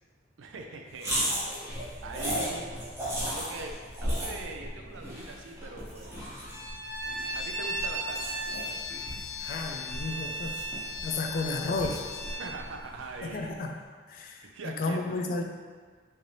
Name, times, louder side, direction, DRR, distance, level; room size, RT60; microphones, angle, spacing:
voice 1, 0.4-1.3 2.0-2.8 3.3-3.7 4.0-6.2 7.3-8.4 12.4-13.7 14.5-15.2, right 3 dB, 85° right, 3 dB, 0.4 m, -41 dB
sound 1, 1.0-13.4, equal, 15° right, 0.8 m, -36 dB
Bowed string instrument, 6.4-12.5, equal, 55° right, 0.8 m, -36 dB
voice 2, 9.4-10.6 11.0-12.1 13.2-13.8 14.1-15.4, left 3 dB, 50° left, 3 dB, 0.3 m, -32 dB
3.6 x 2.7 x 3.2 m, 1.5 s
head